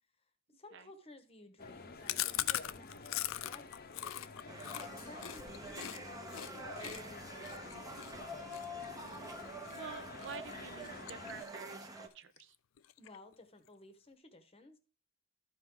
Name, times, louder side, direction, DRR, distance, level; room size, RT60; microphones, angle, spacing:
voice 1, 0.5-3.8 4.8-8.6 13.0-14.8, left 2 dB, 25° left, 8 dB, 1.0 m, -56 dB
sound 1, 1.6-11.4, left 3 dB, 45° left, 0.8 m, -50 dB
Chewing mastication, 2.1-6.0 6.3-6.5 6.8-9.8 10.2-10.5 10.8-11.7 12.0-12.1 12.4-12.5 12.8-13.3, left 13 dB, 60° left, 0.4 m, -40 dB
sound 2, 4.5-12.1, right 1 dB, 15° right, 0.7 m, -47 dB
voice 2, 9.7-12.6, right 5 dB, 55° right, 13 dB, 0.6 m, -49 dB
13.0 x 4.8 x 3.7 m, 0.35 s
head